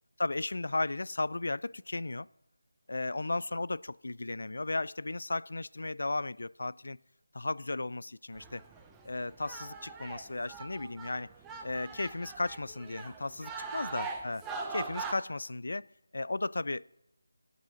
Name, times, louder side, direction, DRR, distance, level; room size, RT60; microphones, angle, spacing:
voice 1, 0.2-2.3 2.9-7.0 7.3-8.6 9.0-11.3 11.6-14.4 14.7-15.9 16.1-16.8, left 2 dB, 60° left, 0.3 m, -35 dB
sound 1, 8.3-15.1, right 4 dB, 5° right, 0.5 m, -42 dB
23.0 x 8.2 x 3.8 m
figure-of-eight pair, 175°, 0 cm